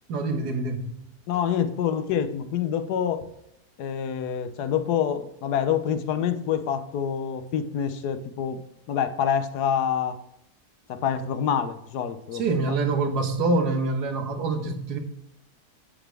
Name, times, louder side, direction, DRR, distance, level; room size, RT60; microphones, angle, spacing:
voice 1, 0.1-0.9 12.3-15.0, right 3 dB, 80° right, 6 dB, 1.7 m, -25 dB
voice 2, 1.3-3.3 3.8-8.6 8.9-10.2 10.9-12.8, left 8 dB, 90° left, 11 dB, 1.3 m, -27 dB
8.1 x 7.7 x 3.4 m, 0.81 s
omnidirectional pair, 1.7 m